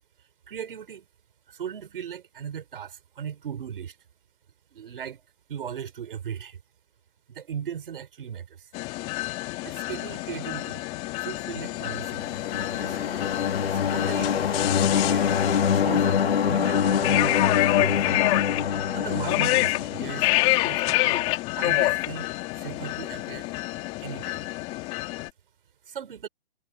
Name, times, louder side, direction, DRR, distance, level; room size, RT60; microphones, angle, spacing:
voice 1, 0.5-1.1 1.5-4.0 4.7-5.2 5.5-6.6 7.3-8.7 9.6-10.8 11.2-12.2 12.5-13.1 13.7-14.5 14.9-15.3 15.7-16.2 16.5-17.5 17.8-18.3 18.9-20.3 20.6-21.2 21.5-22.3 22.6-23.5 24.0-24.4 25.9-26.3, right 8 dB, 65° right, 5.4 m, -37 dB
sound 1, 8.7-25.3, left 20 dB, 20° left, 2.0 m, -28 dB
sound 2, 11.9-20.6, left 7 dB, 85° left, 1.8 m, -25 dB
hypercardioid pair, 160°, 30 cm